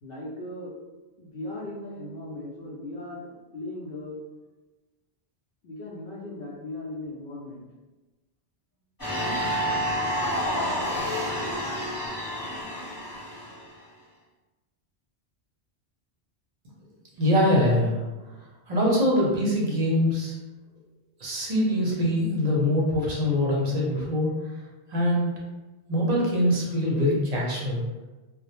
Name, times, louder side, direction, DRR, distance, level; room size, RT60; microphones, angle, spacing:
voice 1, 0.0-0.7 1.2-4.2 5.6-7.7, left 1 dB, 65° left, -4 dB, 0.7 m, -38 dB
sound 1, 9.0-13.7, equal, 20° left, 0.8 m, -29 dB
voice 2, 17.2-18.0 18.7-20.4 21.2-24.3 24.9-25.3 25.9-27.8, left 1 dB, 45° right, -3 dB, 0.6 m, -23 dB
2.1 x 2.0 x 2.9 m, 1.1 s
omnidirectional pair, 1.1 m